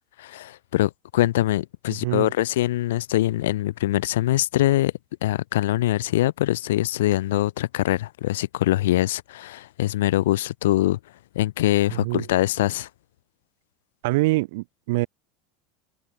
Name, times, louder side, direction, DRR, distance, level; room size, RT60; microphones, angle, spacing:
voice 1, 0.2-4.9 5.2-11.0 11.3-12.9, left 15 dB, 85° left, 0.9 m, -23 dB
voice 2, 1.9-2.3 11.9-12.2 14.0-15.1, right 22 dB, 75° right, 3.0 m, -25 dB
supercardioid pair, 110°, 0 cm